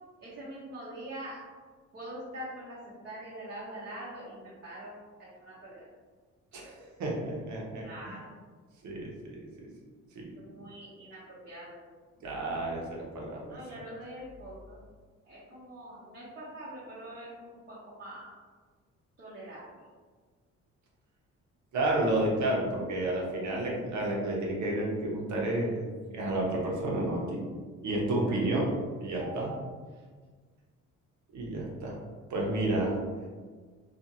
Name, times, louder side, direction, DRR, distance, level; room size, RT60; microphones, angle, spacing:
voice 1, 0.2-1.4 1.9-5.8 7.8-8.3 10.4-11.8 13.5-14.8 15.2-18.4 19.2-19.7 28.2-28.3, right 1 dB, 35° right, -9 dB, 0.8 m, -44 dB
voice 2, 6.5-7.9 8.8-9.1 9.6-9.7 10.1-10.3 12.2-13.6 21.7-25.8 26.1-27.4 27.8-28.7 29.0-29.6 31.3-32.0 32.3-33.0, right 1 dB, 70° right, -2 dB, 0.8 m, -30 dB
2.5 x 2.5 x 2.8 m, 1.5 s
cardioid pair, 90°, 30 cm